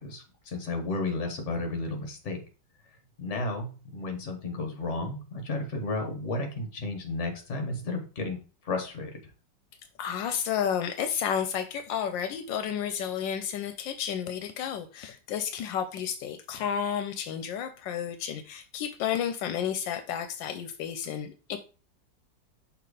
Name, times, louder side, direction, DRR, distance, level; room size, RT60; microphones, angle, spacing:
voice 1, 0.0-2.4 3.2-8.4 8.6-9.3, left 2 dB, 45° left, 4 dB, 1.5 m, -33 dB
voice 2, 10.0-21.6, left 8 dB, 80° left, 9 dB, 1.3 m, -31 dB
5.9 x 3.3 x 4.8 m, 0.36 s
omnidirectional pair, 2.0 m